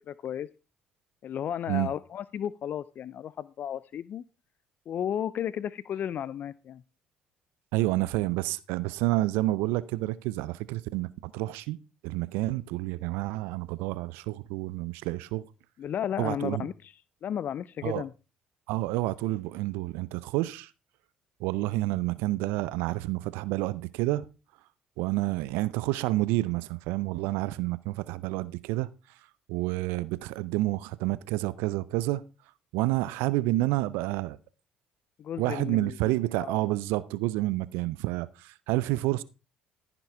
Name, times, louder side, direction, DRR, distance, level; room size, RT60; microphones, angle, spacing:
voice 1, 0.1-0.5 1.2-4.2 4.9-6.8 15.8-16.9 17.2-18.1 35.2-36.6, left 9 dB, 50° left, 0.4 m, -34 dB
voice 2, 7.7-11.8 12.0-15.4 16.2-16.6 17.8-18.0 18.7-20.7 21.4-24.2 25.0-28.9 29.5-32.2 32.7-34.4 35.4-39.2, right 18 dB, 70° right, 0.5 m, -29 dB
14.5 x 6.1 x 4.5 m
hypercardioid pair, 50°, 4 cm